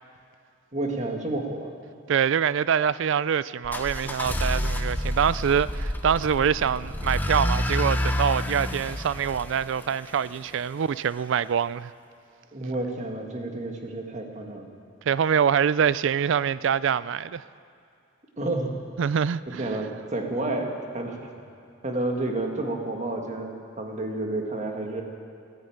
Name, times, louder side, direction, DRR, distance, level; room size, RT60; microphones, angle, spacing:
voice 1, 0.7-1.7 12.5-14.7 18.4-18.7 19.5-21.3 21.8-25.0, right 2 dB, 35° right, 1.7 m, -30 dB
voice 2, 2.1-11.9 15.1-17.4 19.0-19.6, right 7 dB, 60° right, 0.3 m, -25 dB
sound 1, 3.6-10.5, left 1 dB, 10° left, 0.7 m, -29 dB
16.0 x 9.4 x 8.7 m
head